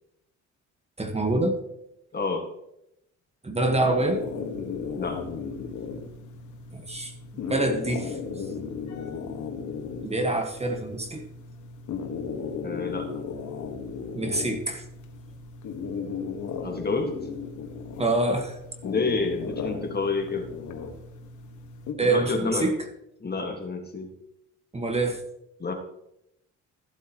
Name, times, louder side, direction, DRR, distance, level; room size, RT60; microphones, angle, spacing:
voice 1, 1.0-1.6 3.4-4.2 6.7-7.1 7.5-8.7 10.0-11.2 14.1-14.8 18.0-18.6 22.0-22.8 24.7-25.2, right 2 dB, 20° right, 5 dB, 1.4 m, -26 dB
voice 2, 2.1-2.5 5.0-5.2 12.6-13.1 16.6-17.1 18.8-20.5 22.0-22.7 23.2-24.1 25.6-25.7, left 4 dB, 30° left, 3 dB, 1.8 m, -29 dB
sound 1, 3.9-21.9, left 5 dB, 75° left, 1.6 m, -36 dB
14.5 x 8.1 x 3.0 m, 0.81 s
cardioid pair, 90°, 30 cm